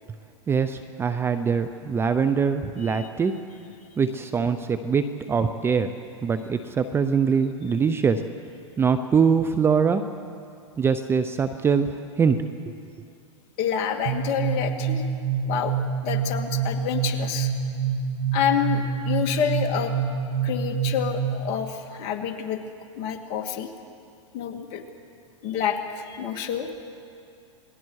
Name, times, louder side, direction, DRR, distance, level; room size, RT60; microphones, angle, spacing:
voice 1, 0.5-3.3 4.0-5.9 6.2-8.2 8.8-10.0 10.8-11.9 12.2-12.4, right 6 dB, 15° right, 10 dB, 0.7 m, -23 dB
voice 2, 13.6-15.0 15.5-15.8 16.0-17.5 18.3-19.9 20.4-22.6 23.0-23.7 24.3-24.8 25.4-26.7, left 8 dB, 40° left, 5 dB, 2.0 m, -28 dB
sound 1, 14.1-21.6, right 6 dB, 65° right, 2.2 m, -27 dB
28.0 x 20.5 x 4.8 m, 2.5 s
hypercardioid pair, 130°, 16 cm